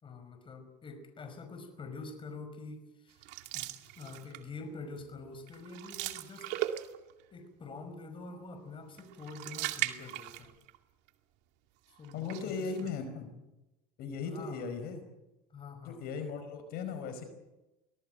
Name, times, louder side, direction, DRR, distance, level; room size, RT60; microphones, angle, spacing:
voice 1, 0.0-3.2 3.5-3.7 4.0-6.5 7.3-10.5 12.0-12.9 14.2-14.6 15.5-16.0, left 3 dB, 25° left, 7 dB, 5.5 m, -46 dB
sound 1, 3.2-4.6 5.0-5.2 5.5-7.2 9.0-10.8 11.1-11.2 12.0-12.9, right 14 dB, 65° right, 2.3 m, -38 dB
voice 2, 12.1-13.3 14.0-15.0 15.8-17.2, left 5 dB, 55° left, 8 dB, 5.1 m, -37 dB
24.5 x 18.5 x 7.9 m, 1.0 s
supercardioid pair, 115°, 19 cm